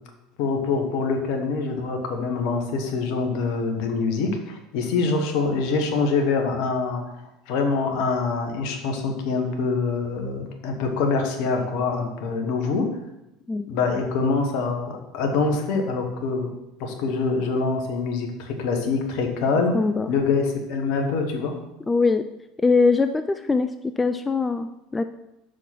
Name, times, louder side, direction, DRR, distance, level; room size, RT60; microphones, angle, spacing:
voice 1, 0.4-7.0 7.5-12.9 13.7-16.5 16.8-19.7 20.1-21.5, left 4 dB, 60° left, 4 dB, 1.3 m, -25 dB
voice 2, 19.7-20.1 21.9-22.3 22.6-25.0, left 4 dB, 20° left, 9 dB, 0.3 m, -22 dB
5.9 x 4.9 x 5.9 m, 0.90 s
hypercardioid pair, 70°, 0 cm